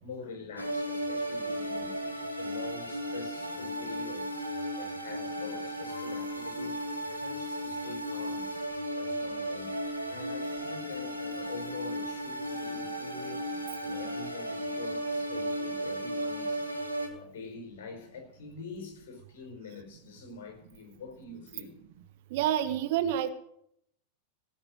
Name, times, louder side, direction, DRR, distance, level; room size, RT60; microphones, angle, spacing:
voice 1, 0.0-4.4 4.8-6.8 7.1-8.5 9.0-9.7 10.1-16.6 17.0-21.8, left 4 dB, 55° left, 4 dB, 4.6 m, -45 dB
sound 1, 0.6-17.1, equal, 90° left, 2.4 m, -35 dB
voice 2, 22.3-23.3, right 11 dB, 50° right, 11 dB, 1.1 m, -28 dB
18.0 x 6.7 x 7.8 m, 0.75 s
figure-of-eight pair, 90°, 0 cm